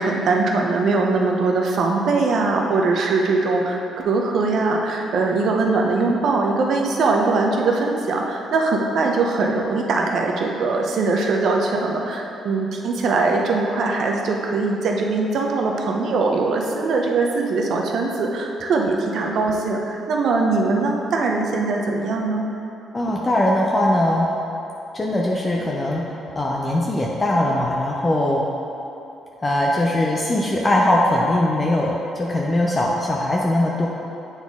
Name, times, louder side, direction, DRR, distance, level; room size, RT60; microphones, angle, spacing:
voice 1, 0.0-3.8 4.0-22.5, right 3 dB, 65° right, 1 dB, 0.7 m, -21 dB
voice 2, 22.9-24.3 24.9-28.5 29.4-33.9, left 1 dB, 25° left, -2 dB, 0.6 m, -21 dB
7.9 x 4.1 x 3.6 m, 2.9 s
cardioid pair, 90°, 0 cm